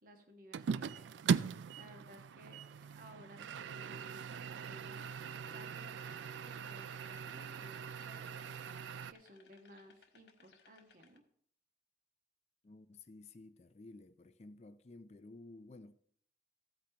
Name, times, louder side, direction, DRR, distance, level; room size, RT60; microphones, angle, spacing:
voice 1, 0.0-1.1 1.8-2.6 2.9-5.1 5.5-6.2 6.4-11.2, right 1 dB, 50° right, 1.4 m, -58 dB
sound 1, 0.5-9.1, right 6 dB, 75° right, 0.3 m, -40 dB
sound 2, 4.9-11.2, left 5 dB, 70° left, 1.0 m, -65 dB
voice 2, 12.6-15.9, left 2 dB, 35° left, 0.4 m, -54 dB
15.0 x 8.5 x 2.9 m
head